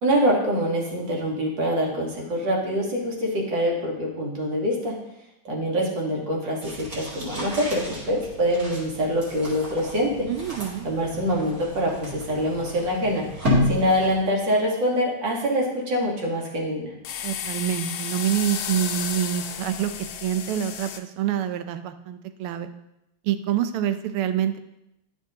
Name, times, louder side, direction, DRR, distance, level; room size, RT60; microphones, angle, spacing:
voice 1, 0.0-5.0 5.5-10.3 10.8-13.3 13.7-16.9, equal, 60° right, -2 dB, 2.2 m, -25 dB
sound 1, 6.6-14.3, left 1 dB, 45° right, 2.6 m, -31 dB
voice 2, 10.3-10.8 17.2-19.9 20.2-22.7 23.2-24.6, right 10 dB, 90° right, 10 dB, 1.5 m, -26 dB
sound 2, 17.0-21.0, left 8 dB, 80° left, 1.4 m, -32 dB
10.5 x 6.0 x 2.8 m, 0.87 s
omnidirectional pair, 2.3 m